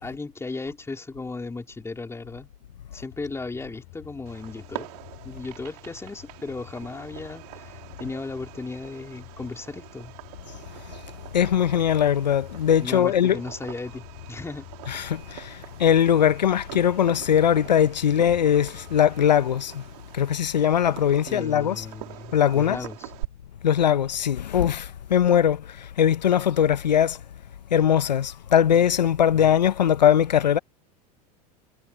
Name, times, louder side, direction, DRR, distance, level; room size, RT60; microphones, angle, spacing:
voice 1, 0.0-2.5 2.9-4.9 5.2-10.2 12.8-14.7 21.3-23.1 29.3-29.5, left 3 dB, 10° left, 3.7 m, -36 dB
sound 1, 3.1-19.3, left 36 dB, 60° left, 6.6 m, -49 dB
Fireworks, 4.3-23.3, right 21 dB, 65° right, 3.0 m, -44 dB
voice 2, 11.3-13.4 14.9-19.8 20.1-21.8 22.3-22.8 23.6-27.2 27.7-30.6, left 9 dB, 85° left, 1.0 m, -21 dB
hypercardioid pair, 90°, 21 cm